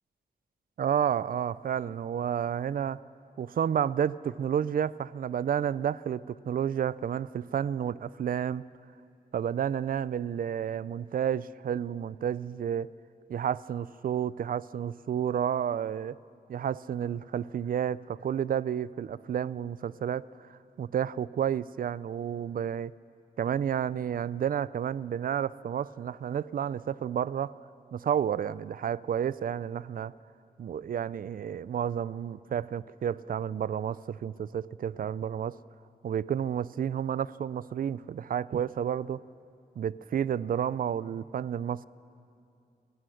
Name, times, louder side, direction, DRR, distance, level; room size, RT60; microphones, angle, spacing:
voice 1, 0.8-3.0 3.4-8.6 9.3-12.9 13.3-16.2 16.5-20.3 20.8-22.9 23.4-27.5 27.9-30.1 30.6-35.6 36.0-39.2 39.8-41.9, right 9 dB, 60° right, 19 dB, 0.4 m, -31 dB
29.0 x 17.0 x 6.4 m, 2.6 s
wide cardioid pair, 140°, 17 cm